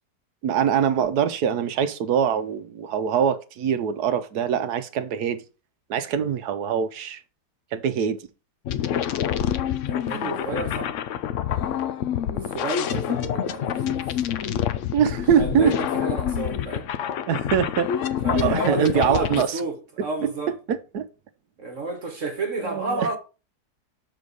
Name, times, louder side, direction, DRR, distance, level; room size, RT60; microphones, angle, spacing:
voice 1, 0.4-5.4 5.9-7.2 7.7-8.2 14.9-15.7 17.3-17.9 18.3-19.5 20.0-20.1 20.7-21.1 22.6-23.1, right 8 dB, 70° right, 1.2 m, -23 dB
sound 1, 8.7-19.4, left 9 dB, 70° left, 0.7 m, -27 dB
voice 2, 9.9-10.9 12.3-14.2 15.3-16.9 18.2-20.5 21.6-23.2, right 2 dB, 50° right, 1.5 m, -30 dB
6.3 x 4.4 x 5.2 m
omnidirectional pair, 1.8 m